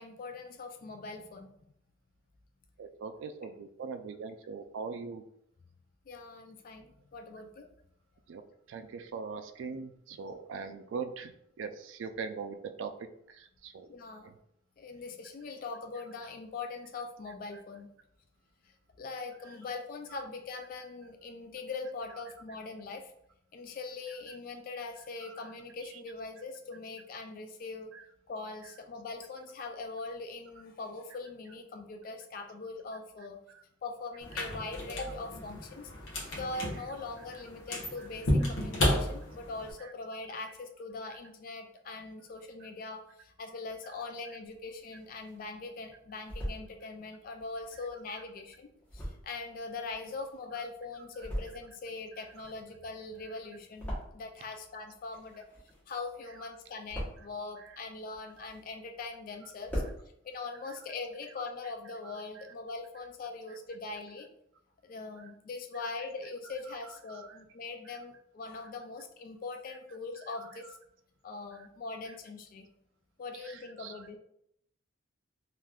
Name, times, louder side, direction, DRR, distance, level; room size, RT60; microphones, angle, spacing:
voice 1, 0.0-1.5 6.1-7.7 13.8-14.3 14.8-17.9 18.6-23.1 23.5-27.9 28.3-33.4 33.8-35.9 36.3-55.4 55.9-59.8 60.2-64.3 64.8-70.8 71.2-72.7 73.2-74.2, left 3 dB, 45° left, 4 dB, 0.3 m, -42 dB
voice 2, 2.8-5.2 8.3-8.4 8.7-12.9 13.3-13.9 14.2-14.3 17.5-17.6 20.1-20.2 22.1-22.2 24.1-24.4 25.2-25.5 25.8-26.0 27.9-28.1 28.6-28.7 33.5-33.6 38.0-38.1 38.4-38.5 39.8-39.9 41.1-41.2 42.6-42.7 48.1-48.2 50.5-50.7 50.9-51.3 52.1-52.5 53.2-53.4 56.3-56.5 57.2-57.3 57.6-57.8 59.4-59.5 60.6-60.7 61.4-61.5 62.0-62.5 63.5-63.6 65.2-65.3 65.7-66.1 66.5-67.4 67.8-67.9 69.7-69.8 70.2-70.8 71.5-71.7 73.3-74.1, right 5 dB, 75° right, 8 dB, 0.3 m, -43 dB
sound 1, 34.2-39.7, left 1 dB, 90° left, 0.8 m, -33 dB
sound 2, 44.5-45.5 45.9-46.6 47.3-50.6 51.0-51.8 52.1-54.5 54.8-56.0 56.4-57.4 57.9-59.0 59.3-59.4 59.5-60.0, equal, 10° left, 1.0 m, -41 dB
3.4 x 2.5 x 2.3 m, 0.73 s
head